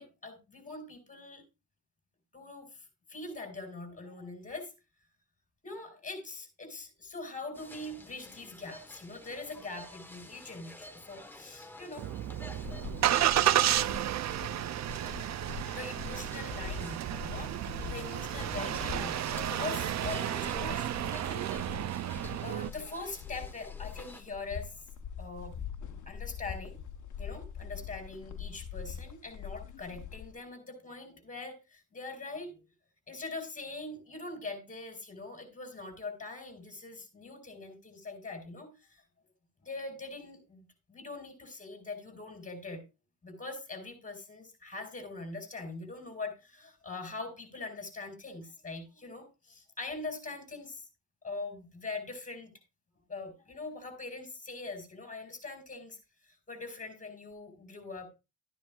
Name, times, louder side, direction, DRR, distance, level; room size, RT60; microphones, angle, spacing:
voice 1, 0.0-1.4 2.3-4.7 5.6-12.0 15.7-21.7 22.4-24.8 25.2-25.5 26.1-26.8 27.2-32.6 33.1-39.0 39.6-42.8 43.2-50.9 51.2-52.5 53.1-58.1, left 3 dB, 25° left, 4 dB, 4.8 m, -42 dB
sound 1, 7.5-24.2, left 1 dB, 5° left, 1.1 m, -50 dB
Engine starting, 12.0-22.7, right 12 dB, 60° right, 0.5 m, -32 dB
sound 2, 12.3-30.4, left 7 dB, 65° left, 1.0 m, -44 dB
13.0 x 10.0 x 2.3 m, 0.27 s
cardioid pair, 115°, 32 cm